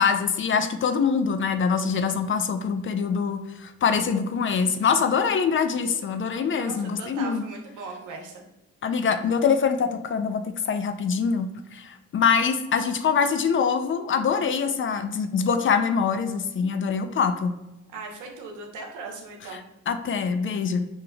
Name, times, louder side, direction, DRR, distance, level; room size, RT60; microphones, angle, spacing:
voice 1, 0.0-7.4 8.8-17.6 19.5-20.9, left 6 dB, 45° left, 8 dB, 0.4 m, -24 dB
voice 2, 6.6-8.4 17.9-19.6, right 4 dB, 80° right, 1 dB, 1.0 m, -38 dB
5.1 x 3.2 x 2.3 m, 0.95 s
cardioid pair, 90°, 30 cm